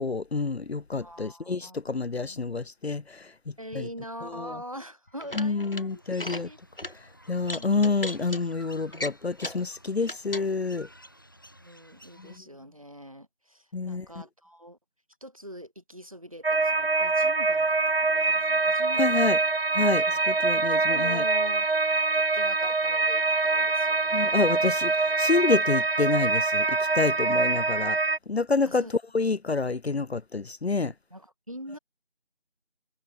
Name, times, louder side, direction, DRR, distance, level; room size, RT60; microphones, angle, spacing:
voice 1, 0.0-3.9 4.2-4.5 5.3-6.5 6.9-10.9 12.2-12.3 13.7-14.1 19.0-19.4 19.7-21.2 24.1-28.0 28.3-28.9 29.1-30.9, left 4 dB, 75° left, 0.7 m, -28 dB
voice 2, 1.0-2.0 2.2-2.9 3.6-7.0 7.3-7.9 11.5-14.8 15.2-19.3 20.1-20.2 20.7-24.7 28.6-29.0 30.8-31.8, equal, 30° right, 5.3 m, -44 dB
sound 1, 5.1-5.8 6.1-6.4 6.8-6.9 7.4-8.4 8.9-9.7 10.0-10.5, left 1 dB, 55° left, 1.9 m, -36 dB
sound 2, 5.9-12.4, equal, 20° left, 6.6 m, -52 dB
sound 3, 16.4-28.2, right 3 dB, 65° right, 0.7 m, -24 dB
figure-of-eight pair, 180°, 32 cm